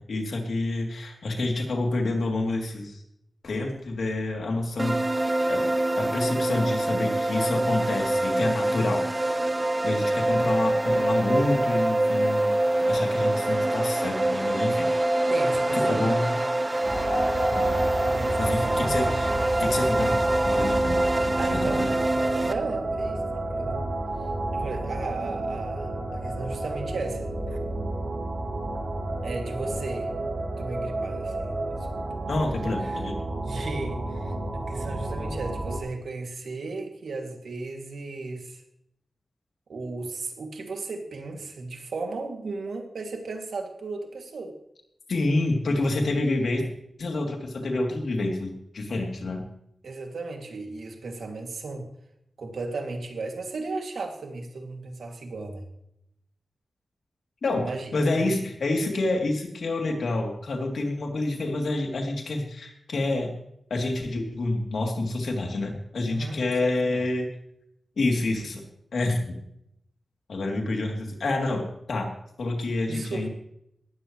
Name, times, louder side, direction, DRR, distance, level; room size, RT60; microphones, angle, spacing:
voice 1, 0.0-3.0 3.4-5.0 5.4-5.6 6.0-9.0 9.8-12.5 12.9-14.9 15.7-16.3 17.5-17.7 18.4-20.2 20.4-21.9 32.3-33.2 45.1-46.6 47.0-49.4 57.4-57.6 57.9-63.3 63.7-67.3 68.0-68.6 68.9-69.3 70.3-71.6 71.9-72.1 72.4-73.3, left 2 dB, 75° left, 1 dB, 3.2 m, -28 dB
sound 1, 4.8-22.5, right 1 dB, 15° right, 0.6 m, -25 dB
voice 2, 15.3-16.2 18.1-19.2 21.4-21.9 22.4-23.2 23.5-23.8 24.5-27.6 29.2-30.1 30.6-31.9 32.8-38.6 39.7-44.5 49.8-51.9 52.4-55.6 57.6-58.4 66.1-67.0 72.9-73.3, right 3 dB, 90° right, 2 dB, 2.7 m, -35 dB
sound 2, 16.8-35.8, right 2 dB, 50° right, 5.5 m, -31 dB
19.0 x 15.0 x 3.3 m, 0.77 s
wide cardioid pair, 155°, 0 cm